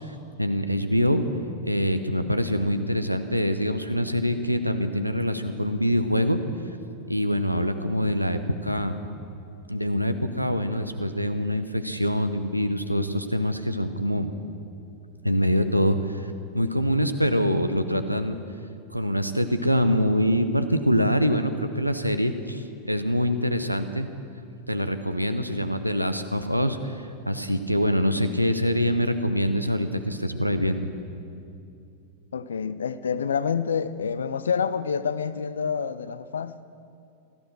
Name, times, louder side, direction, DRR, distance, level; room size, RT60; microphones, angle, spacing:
voice 1, 0.1-1.2 1.6-6.4 7.1-9.0 9.7-14.3 15.2-16.3 16.5-18.4 18.9-24.1 24.7-30.9, equal, 90° right, 9 dB, 0.9 m, -25 dB
voice 2, 32.3-36.6, left 6 dB, 70° left, 15 dB, 0.6 m, -27 dB
16.0 x 14.0 x 6.4 m, 2.5 s
figure-of-eight pair, 90°, 0 cm